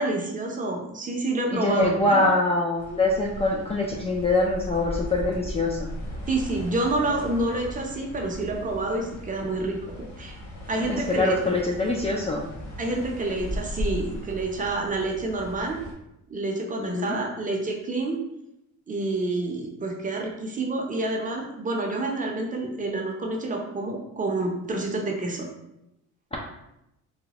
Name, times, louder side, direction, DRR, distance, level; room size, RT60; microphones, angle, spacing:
voice 1, 0.0-2.3 6.3-10.4 10.7-11.3 12.8-15.8 16.3-18.2 18.9-25.5, right 2 dB, 25° right, 1 dB, 0.6 m, -28 dB
voice 2, 1.5-5.9 10.9-12.5 16.8-17.2 26.3-26.4, left 2 dB, 20° left, -1 dB, 0.3 m, -24 dB
sound 1, 2.8-15.9, left 1 dB, 60° left, 1.5 m, -37 dB
3.9 x 2.2 x 2.8 m, 0.85 s
cardioid pair, 120°, 31 cm